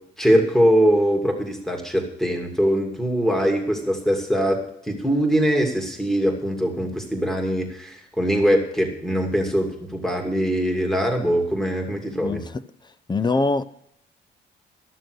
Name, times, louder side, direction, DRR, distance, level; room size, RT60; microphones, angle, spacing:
voice 1, 0.2-4.6 4.8-12.4, equal, ahead, 2.5 m, -22 dB
voice 2, 12.2-12.6 13.1-13.6, left 3 dB, 20° left, 0.7 m, -23 dB
14.0 x 6.8 x 6.3 m
cardioid pair, 90°, 20 cm